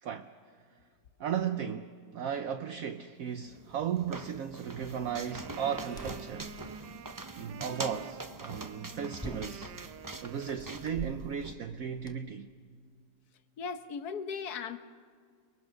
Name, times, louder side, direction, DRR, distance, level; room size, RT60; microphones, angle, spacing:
voice 1, 0.0-0.3 1.2-6.6 7.4-9.7 10.2-12.5, right 8 dB, 60° right, 1.1 m, -35 dB
sound 1, 3.4-11.5, right 2 dB, 30° right, 0.4 m, -44 dB
Wind instrument woodwind instrument, 5.1-11.0, right 9 dB, 80° right, 1.4 m, -49 dB
sound 2, 5.7-12.1, equal, 5° left, 1.2 m, -49 dB
voice 2, 13.6-14.8, left 6 dB, 65° left, 1.5 m, -37 dB
29.5 x 22.0 x 6.4 m
omnidirectional pair, 1.8 m